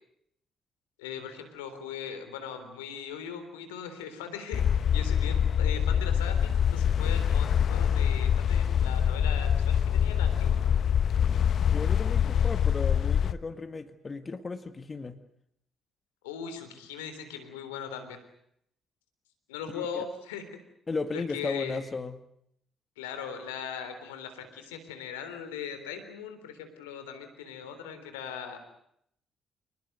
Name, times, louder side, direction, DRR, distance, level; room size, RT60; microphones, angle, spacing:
voice 1, 1.0-10.6 16.2-18.2 19.5-20.4 21.1-21.8 23.0-28.6, left 7 dB, 90° left, 9 dB, 3.6 m, -39 dB
sound 1, 4.5-13.3, left 8 dB, 60° left, 1.1 m, -25 dB
voice 2, 11.2-15.2 19.7-20.1 20.9-22.2, left 4 dB, 35° left, 10 dB, 2.0 m, -36 dB
28.0 x 20.0 x 7.9 m, 0.72 s
hypercardioid pair, 50°, 0 cm